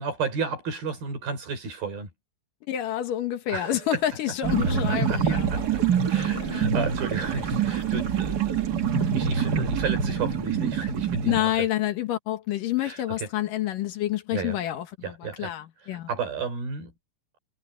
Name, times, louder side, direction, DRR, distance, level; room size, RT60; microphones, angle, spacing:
voice 1, 0.0-2.1 3.5-3.8 4.9-5.8 6.1-11.5 12.8-13.3 14.3-14.6 15.0-15.5 15.9-16.9, right 5 dB, 85° right, 8.1 m, -33 dB
voice 2, 2.7-5.5 6.3-6.7 11.2-16.1, left 13 dB, 70° left, 2.9 m, -28 dB
sound 1, 4.4-11.4, right 7 dB, 45° right, 1.3 m, -25 dB
omnidirectional pair, 4.2 m